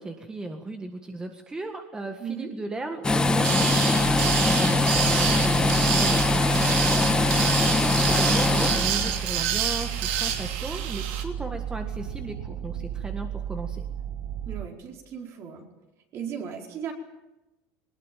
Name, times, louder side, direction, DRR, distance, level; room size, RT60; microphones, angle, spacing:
voice 1, 0.0-13.8, right 2 dB, 10° right, 5 dB, 1.7 m, -36 dB
voice 2, 2.2-2.5 5.6-5.9 14.5-15.7 16.1-16.9, right 7 dB, 45° right, 2 dB, 4.6 m, -36 dB
sound 1, 3.0-9.2, left 2 dB, 15° left, 1.4 m, -22 dB
sound 2, 3.4-11.2, right 9 dB, 90° right, 3.0 m, -28 dB
sound 3, 4.0-14.7, right 9 dB, 70° right, 1.3 m, -34 dB
20.5 x 19.5 x 9.3 m, 1.0 s
cardioid pair, 135°, 6 cm